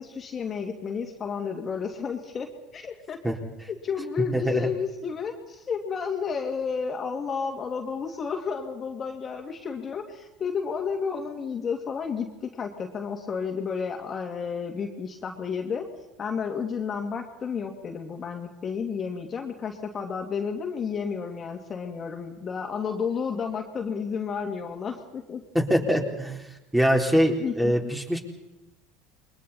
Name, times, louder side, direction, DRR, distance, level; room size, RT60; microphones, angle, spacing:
voice 1, 0.0-3.2 3.7-15.9 16.2-25.4 27.4-27.9, left 6 dB, 35° left, 3 dB, 2.4 m, -31 dB
voice 2, 4.3-4.7 25.5-26.4 26.7-28.2, equal, 10° right, 1 dB, 4.0 m, -23 dB
29.0 x 22.5 x 4.3 m, 0.99 s
hypercardioid pair, 75°, 0 cm